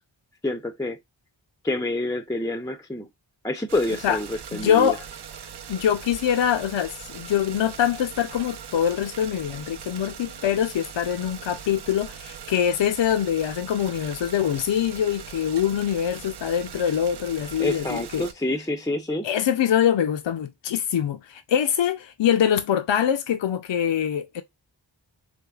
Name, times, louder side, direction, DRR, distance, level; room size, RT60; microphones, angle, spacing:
voice 1, 0.4-1.0 1.6-3.1 3.4-4.9 17.6-19.3, left 1 dB, 10° left, 0.4 m, -27 dB
sound 1, 3.7-18.3, right 8 dB, 60° right, 0.5 m, -40 dB
voice 2, 4.5-5.0 5.7-18.3 19.2-24.4, left 9 dB, 70° left, 0.5 m, -24 dB
3.4 x 3.2 x 2.3 m
wide cardioid pair, 45°, 46 cm